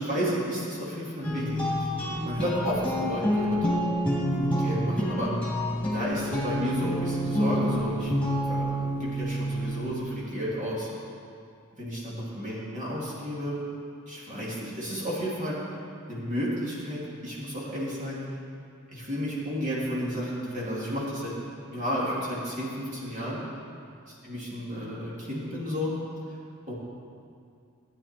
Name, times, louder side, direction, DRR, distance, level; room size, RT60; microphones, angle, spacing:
voice 1, 0.0-1.9 2.2-3.7 4.3-5.3 5.9-8.1 8.4-10.9 11.8-13.6 14.1-15.5 16.1-18.4 18.9-21.3 21.6-23.4 24.2-25.9 26.3-26.4 26.7-26.8, equal, 35° right, -7 dB, 2.7 m, -32 dB
sound 1, 1.2-10.1, equal, 5° left, 2.7 m, -28 dB
14.5 x 9.6 x 4.5 m, 2.4 s
head